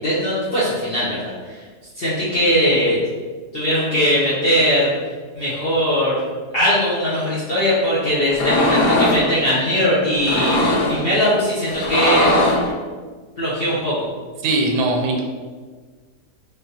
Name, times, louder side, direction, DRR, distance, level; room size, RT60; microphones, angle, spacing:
voice 1, 0.0-1.3 2.0-3.0 3.5-4.9 5.3-6.1 6.5-10.6 10.9-12.3 13.4-14.0, equal, 55° left, -9 dB, 0.6 m, -19 dB
sound 1, 8.3-9.3 10.1-11.0 11.7-12.7, left 1 dB, 80° left, 1.2 m, -19 dB
voice 2, 14.4-15.2, right 2 dB, 80° right, 0 dB, 1.1 m, -20 dB
3.5 x 2.4 x 2.7 m, 1.5 s
omnidirectional pair, 1.7 m